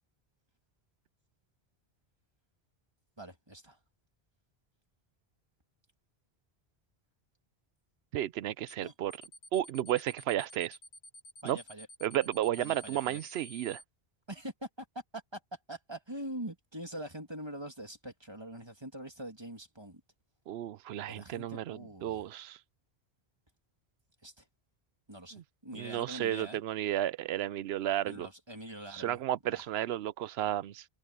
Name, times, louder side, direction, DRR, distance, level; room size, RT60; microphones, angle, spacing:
voice 1, 3.2-3.8 8.8-8.9 11.4-11.9 12.6-13.2 14.3-14.9 15.1-15.4 15.7-20.0 21.1-22.2 24.2-24.4 25.1-26.6 28.0-29.2 29.5-29.6, right 1 dB, 25° right, 2.8 m, -44 dB
voice 2, 8.1-9.1 9.5-10.8 11.4-11.6 12.0-13.8 20.5-22.6 25.3-25.4 25.7-28.3 28.9-30.8, right 12 dB, 80° right, 0.8 m, -33 dB
sound 1, 8.7-8.8 9.1-13.8, equal, 65° left, 1.4 m, -51 dB
omnidirectional pair, 1.1 m